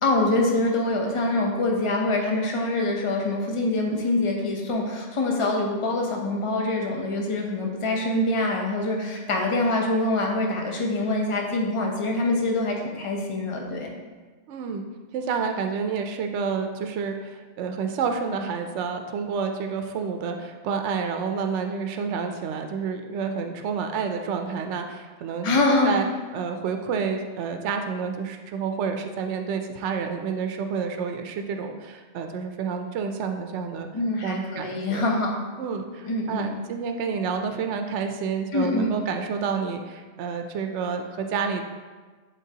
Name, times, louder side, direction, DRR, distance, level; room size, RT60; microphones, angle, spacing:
voice 1, 0.0-13.9 25.4-25.9 33.9-35.4 36.0-36.5 38.5-38.9, left 2 dB, 30° left, 0 dB, 0.8 m, -25 dB
voice 2, 14.5-14.9 15.1-25.5 25.8-26.1 26.3-33.9 34.2-35.0 35.6-41.6, right 6 dB, 80° right, 5 dB, 0.9 m, -29 dB
11.0 x 3.8 x 2.8 m, 1.4 s
omnidirectional pair, 1.2 m